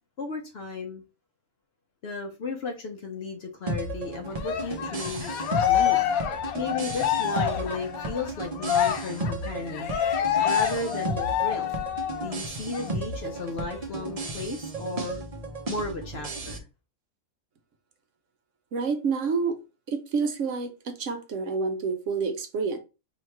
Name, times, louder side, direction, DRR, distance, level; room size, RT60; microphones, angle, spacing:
voice 1, 0.2-1.0 2.0-5.3 5.6-6.1 6.5-9.9 10.4-11.7 12.2-15.2 15.7-16.6, left 3 dB, 55° left, 0.8 m, -34 dB
sound 1, 3.7-16.6, right 2 dB, 40° right, 0.5 m, -34 dB
Cheering, 4.4-12.3 12.7-12.9 13.3-14.3, left 10 dB, 80° left, 1.1 m, -27 dB
voice 2, 18.7-19.6 19.9-22.8, right 5 dB, 65° right, 0.9 m, -28 dB
3.0 x 2.8 x 4.4 m
omnidirectional pair, 1.5 m